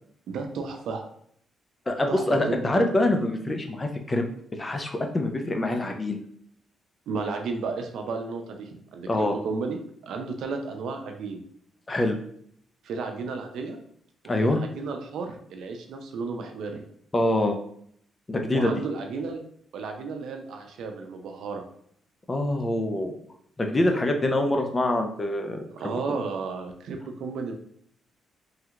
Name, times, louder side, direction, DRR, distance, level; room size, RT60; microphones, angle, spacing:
voice 1, 0.3-1.0 2.1-2.8 7.1-11.4 12.8-13.8 14.4-16.9 18.5-19.4 19.7-21.6 25.7-27.5, right 4 dB, 80° right, 4 dB, 0.5 m, -33 dB
voice 2, 1.9-4.2 4.5-6.2 9.1-9.3 11.9-12.2 14.3-14.6 17.1-17.5 18.3-18.7 22.3-23.1 23.6-25.6, left 1 dB, 25° left, 4 dB, 0.5 m, -25 dB
3.2 x 2.8 x 2.4 m, 0.64 s
cardioid pair, 80°, 0 cm